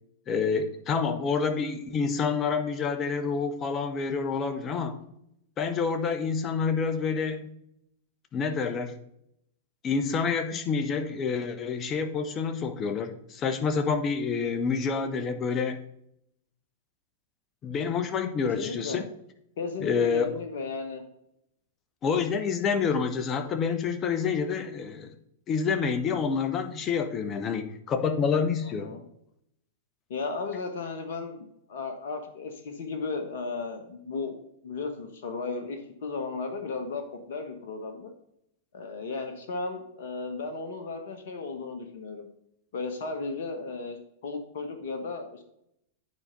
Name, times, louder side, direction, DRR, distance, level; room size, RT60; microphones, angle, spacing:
voice 1, 0.3-5.0 5.6-7.5 8.3-9.0 9.8-15.8 17.6-19.1 19.8-20.3 22.0-25.1 25.5-28.9, left 5 dB, 30° left, 8 dB, 1.0 m, -28 dB
voice 2, 0.9-1.2 18.4-19.0 19.6-21.0 28.6-29.0 30.1-34.4 34.6-37.0 37.3-38.1 38.7-42.3 42.7-45.4, left 4 dB, 65° left, 5 dB, 1.2 m, -35 dB
9.6 x 4.4 x 5.2 m, 0.76 s
hypercardioid pair, 105°, 0 cm